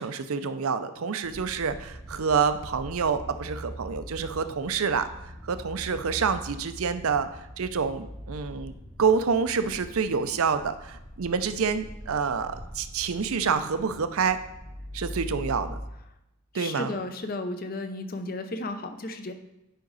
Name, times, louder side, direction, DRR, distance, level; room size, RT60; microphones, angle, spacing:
voice 1, 0.0-5.1 5.5-8.7 9.0-14.4 14.9-15.8 16.5-16.9, right 5 dB, 80° right, 10 dB, 0.6 m, -27 dB
sound 1, 1.2-15.8, equal, 90° left, 3.3 m, -42 dB
voice 2, 16.5-19.3, left 2 dB, 40° left, 7 dB, 0.7 m, -34 dB
10.0 x 5.1 x 4.0 m, 0.88 s
head